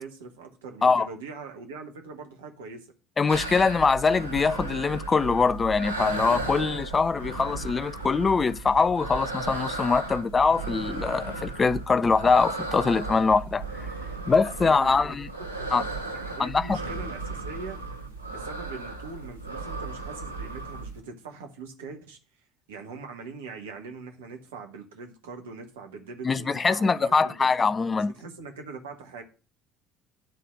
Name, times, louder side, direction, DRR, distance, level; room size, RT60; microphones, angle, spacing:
voice 1, 0.0-2.9 6.4-6.7 14.6-15.0 15.4-17.8 18.3-22.2 22.7-27.5 28.0-29.2, right 4 dB, 70° right, 1.5 m, -42 dB
voice 2, 3.2-13.6 14.3-15.3 15.7-15.8 16.4-16.8 26.2-28.1, left 4 dB, 25° left, 0.5 m, -23 dB
sound 1, 3.3-21.0, right 3 dB, 90° left, 1.1 m, -35 dB
10.5 x 4.1 x 6.3 m
figure-of-eight pair, 55°, 0 cm